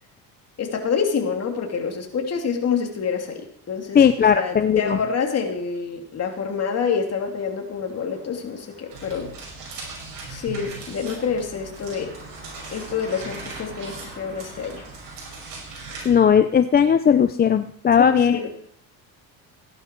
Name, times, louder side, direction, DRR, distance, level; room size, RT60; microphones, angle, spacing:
voice 1, 0.6-9.3 10.3-12.1 12.7-14.8 18.0-18.5, left 6 dB, 45° left, 3 dB, 2.8 m, -27 dB
voice 2, 3.9-5.0 16.0-18.4, left 7 dB, 25° left, 10 dB, 0.5 m, -17 dB
sound 1, 6.8-17.0, right 1 dB, 30° right, 6.3 m, -47 dB
sound 2, 8.9-16.1, right 3 dB, 60° right, 6.6 m, -39 dB
16.0 x 11.0 x 4.6 m, 0.67 s
cardioid pair, 115°, 36 cm